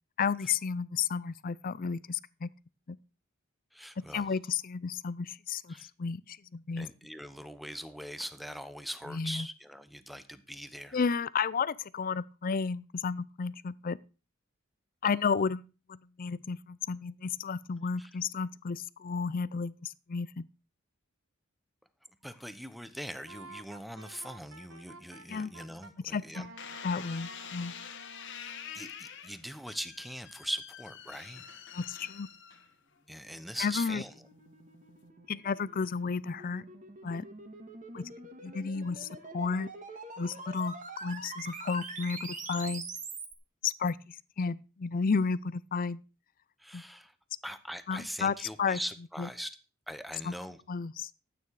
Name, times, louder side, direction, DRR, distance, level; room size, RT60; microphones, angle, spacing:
voice 1, 0.2-2.5 2.9-3.0 4.1-6.9 9.1-9.5 10.9-14.0 15.0-20.5 25.3-25.5 26.1-26.5 26.8-27.7 31.7-32.3 33.6-34.0 35.3-36.6 37.0-37.2 37.9-38.1 38.4-39.1 39.3-39.7 40.2-40.8 41.0-42.9 43.6-46.0 46.7-46.8 47.9-48.8 49.2-49.3 50.2-50.3 50.7-51.1, left 5 dB, 45° left, 0.5 m, -32 dB
voice 2, 3.7-4.3 5.7-5.9 6.8-11.0 18.0-18.1 22.2-26.5 28.4-31.4 33.1-34.1 46.6-47.1 47.4-49.5 49.9-50.6, equal, ahead, 0.9 m, -41 dB
Wind instrument woodwind instrument, 23.3-25.9 26.3-28.7, right 2 dB, 75° right, 1.8 m, -51 dB
sound 1, 26.6-33.0 33.6-34.1, left 8 dB, 60° left, 1.3 m, -46 dB
sound 2, 33.4-43.3, right 3 dB, 40° right, 2.1 m, -45 dB
13.0 x 8.9 x 4.7 m
head